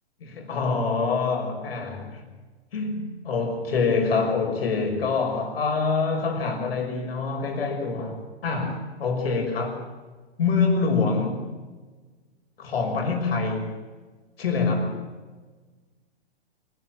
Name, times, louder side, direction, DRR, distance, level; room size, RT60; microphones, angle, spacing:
voice 1, 0.2-2.2 2.7-9.8 10.4-11.4 12.6-13.7 14.4-15.0, left 4 dB, 70° left, 4 dB, 6.0 m, -25 dB
25.0 x 12.5 x 8.8 m, 1.3 s
hypercardioid pair, 125°, 31 cm